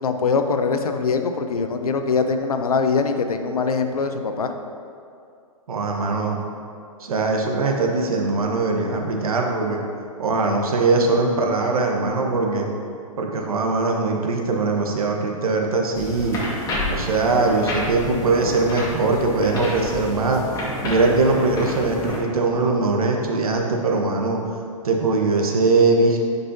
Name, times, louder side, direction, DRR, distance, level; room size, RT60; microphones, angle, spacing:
voice 1, 0.0-4.5, left 5 dB, 85° left, 7 dB, 0.7 m, -22 dB
voice 2, 5.7-6.4 7.0-9.8 10.2-12.7 13.2-16.4 16.9-20.4 20.8-24.4 24.8-26.2, right 3 dB, 80° right, 1 dB, 1.1 m, -21 dB
sound 1, 16.0-22.2, left 1 dB, 20° left, 1.7 m, -30 dB
10.0 x 5.4 x 2.7 m, 2.4 s
hypercardioid pair, 130°, 18 cm